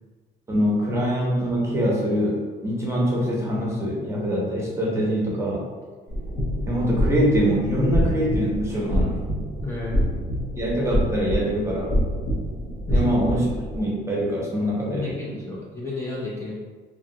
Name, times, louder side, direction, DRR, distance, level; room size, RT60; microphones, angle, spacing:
voice 1, 0.5-5.7 6.7-9.2 10.6-11.9 12.9-13.5 13.7-15.1, equal, 15° right, -3 dB, 0.7 m, -24 dB
sound 1, 6.1-13.8, equal, 85° left, 1.0 m, -26 dB
voice 2, 9.6-10.0 12.9-13.1 14.9-16.6, left 2 dB, 15° left, -6 dB, 0.5 m, -31 dB
2.9 x 2.3 x 2.7 m, 1.5 s
cardioid pair, 110°, 17 cm